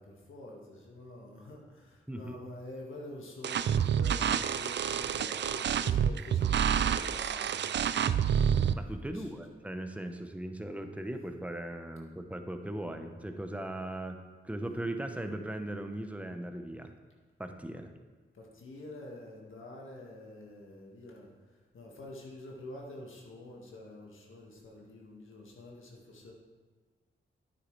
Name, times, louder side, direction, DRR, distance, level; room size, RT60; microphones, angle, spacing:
voice 1, 0.0-8.5 9.1-9.3 18.3-26.3, left 1 dB, 70° left, -2 dB, 1.8 m, -48 dB
sound 1, 3.4-8.7, right 8 dB, 60° right, 0.4 m, -28 dB
voice 2, 8.7-14.2 14.4-16.9 17.4-17.9, right 1 dB, 5° right, 6 dB, 0.9 m, -38 dB
9.6 x 8.5 x 3.3 m, 1.4 s
cardioid pair, 50°, 21 cm